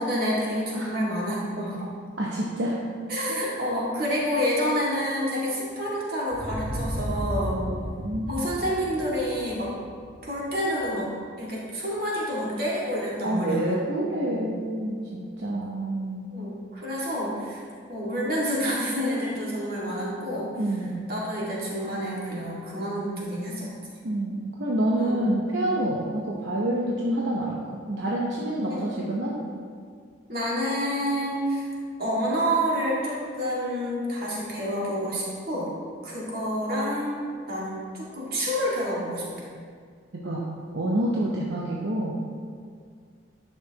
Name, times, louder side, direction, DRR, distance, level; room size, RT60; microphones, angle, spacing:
voice 1, 0.0-1.8 3.1-7.6 8.3-9.7 10.2-13.8 14.3-14.5 16.3-17.6 17.9-20.5 21.1-23.7 24.9-25.3 28.7-28.8 30.3-31.7 32.0-35.7 36.0-37.2 37.5-39.3, equal, 50° right, -6 dB, 2.1 m, -28 dB
voice 2, 2.2-2.8 3.3-3.4 7.5-7.7 8.0-8.5 13.2-16.3 20.6-21.0 24.0-29.4 40.1-40.5 40.7-42.3, right 1 dB, 70° right, -4 dB, 0.9 m, -28 dB
sound 1, 6.3-10.9, equal, 85° right, 1.8 m, -34 dB
11.0 x 6.8 x 2.9 m, 2.1 s
head